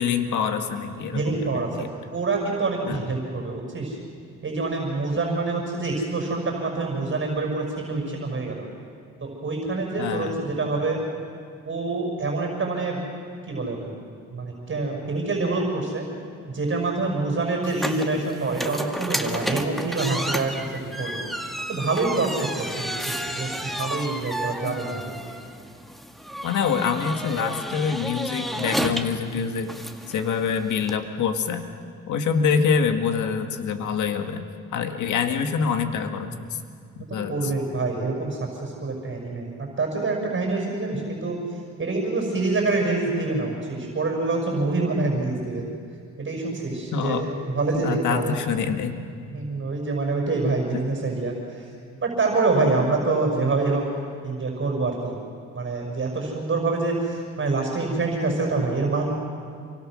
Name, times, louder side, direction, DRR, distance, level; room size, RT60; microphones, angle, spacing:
voice 1, 0.0-1.9 2.9-3.0 5.2-5.4 10.0-10.4 24.6-25.0 26.4-29.7 30.1-31.7 32.1-36.3 37.0-37.5 46.9-47.3 47.7-49.0 50.7-50.8, left 6 dB, 75° left, 6 dB, 1.9 m, -26 dB
voice 2, 1.1-1.7 2.1-4.0 4.4-8.7 9.2-11.0 11.6-13.1 13.5-13.9 14.3-16.1 16.5-20.5 21.0-21.2 21.7-25.2 37.1-39.5 39.8-41.4 41.8-45.6 46.2-48.3 49.3-51.6 52.0-53.9 54.2-55.1 55.5-59.1, right 3 dB, 40° right, 1 dB, 6.2 m, -26 dB
sound 1, 17.6-31.0, equal, ahead, 1.9 m, -32 dB
28.0 x 24.0 x 6.4 m, 2.2 s
cardioid pair, 90°, 30 cm